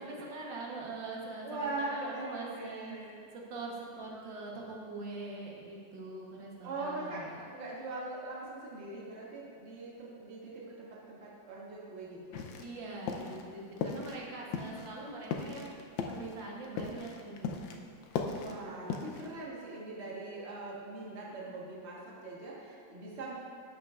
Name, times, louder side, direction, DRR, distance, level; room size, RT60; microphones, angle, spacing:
voice 1, 0.0-2.9 3.3-7.5 12.6-15.7 16.1-17.6, right 3 dB, 75° right, -3 dB, 1.9 m, -43 dB
voice 2, 1.4-3.3 6.6-12.5 18.3-23.3, right 2 dB, 40° right, -5 dB, 1.6 m, -41 dB
sound 1, 12.3-12.8 13.1-13.4 13.8-14.2 14.5-17.8 18.0-19.3, left 5 dB, 85° left, 1.4 m, -37 dB
12.0 x 7.8 x 2.4 m, 2.3 s
omnidirectional pair, 2.0 m